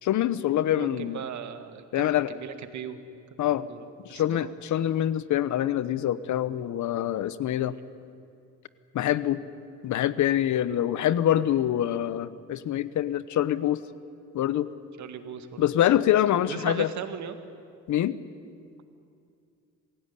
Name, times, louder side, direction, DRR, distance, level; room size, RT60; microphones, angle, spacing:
voice 1, 0.0-1.2 1.9-2.3 3.4-3.7 4.0-7.7 8.9-9.4 9.8-13.8 14.3-14.7 15.6-16.9 17.9-18.2, left 11 dB, 70° left, 16 dB, 1.0 m, -25 dB
voice 2, 0.7-3.0 3.5-4.5 7.6-7.8 15.0-16.0 16.5-17.4, right 8 dB, 70° right, 9 dB, 2.0 m, -39 dB
26.5 x 16.5 x 9.9 m, 2.4 s
cardioid pair, 90°, 30 cm